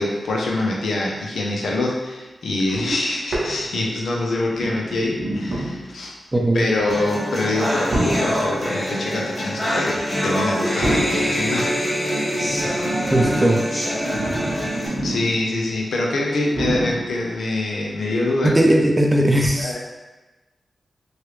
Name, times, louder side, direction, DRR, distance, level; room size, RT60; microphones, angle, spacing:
voice 1, 0.0-6.1 6.5-11.9 15.0-18.6 19.6-19.8, left 2 dB, 80° left, -2 dB, 0.5 m, -25 dB
sound 1, 2.7-4.0 4.5-6.0 6.8-7.1 7.9-8.6 9.8-10.0 10.8-11.4 12.2-15.5 15.7-15.8 16.5-17.3 18.1-18.2, right 1 dB, 70° right, 0.8 m, -28 dB
voice 2, 6.3-6.7 13.1-13.6 18.4-19.8, right 1 dB, 30° right, 2 dB, 0.5 m, -18 dB
sound 2, 6.9-14.9, equal, 30° left, 1.3 m, -24 dB
3.1 x 2.4 x 3.1 m, 1.2 s
cardioid pair, 45°, 0 cm